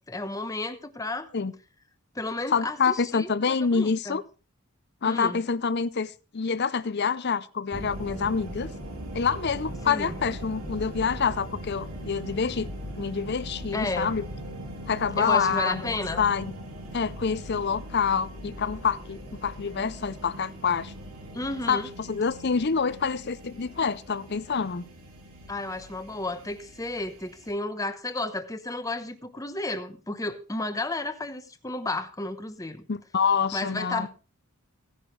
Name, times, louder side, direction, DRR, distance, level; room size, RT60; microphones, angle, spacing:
voice 1, 0.0-1.3 2.1-4.2 5.0-5.4 9.9-10.2 13.7-14.1 15.2-16.3 21.3-21.9 25.5-32.9 33.5-34.1, left 2 dB, 15° left, 1.0 m, -32 dB
voice 2, 2.5-4.2 5.0-8.7 9.1-12.7 13.0-14.3 14.9-16.5 16.9-20.9 21.7-24.9 32.9-34.1, left 5 dB, 50° left, 0.6 m, -27 dB
sound 1, 7.7-27.5, equal, 75° right, 3.1 m, -40 dB
16.5 x 11.0 x 3.2 m
head